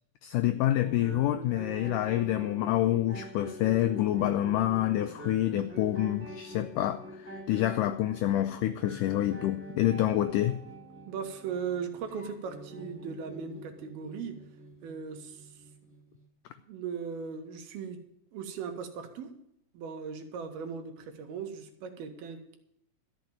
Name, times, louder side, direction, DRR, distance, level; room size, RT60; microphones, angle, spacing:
voice 1, 0.2-10.6, left 13 dB, 90° left, 9 dB, 1.8 m, -27 dB
sound 1, 0.8-16.3, equal, 5° right, 1.3 m, -45 dB
voice 2, 11.1-14.4 14.8-15.6 16.6-18.0 18.3-19.3 19.7-22.6, right 6 dB, 85° right, 5 dB, 3.3 m, -38 dB
13.5 x 6.0 x 9.2 m, 0.77 s
omnidirectional pair, 4.3 m